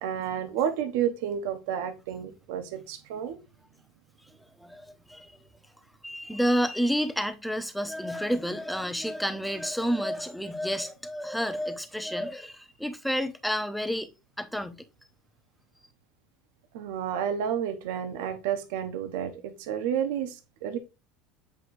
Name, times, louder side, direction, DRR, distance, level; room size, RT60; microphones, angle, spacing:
voice 1, 0.0-3.4 16.7-20.8, right 9 dB, 75° right, 0.8 m, -31 dB
voice 2, 4.3-5.3 6.0-14.1 14.4-14.8, equal, ahead, 0.7 m, -30 dB
7.8 x 4.8 x 2.6 m
supercardioid pair, 130°, 0 cm